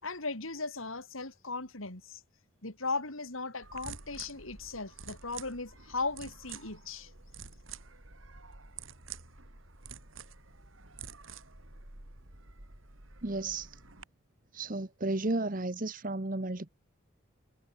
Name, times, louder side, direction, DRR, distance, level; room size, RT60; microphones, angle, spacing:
voice 1, 0.0-2.2 2.6-7.1, left 3 dB, 85° left, 5.7 m, -37 dB
sound 1, 3.6-14.0, right 5 dB, 80° right, 4.0 m, -49 dB
voice 2, 13.2-13.8 14.5-16.7, right 2 dB, 40° right, 1.2 m, -33 dB
head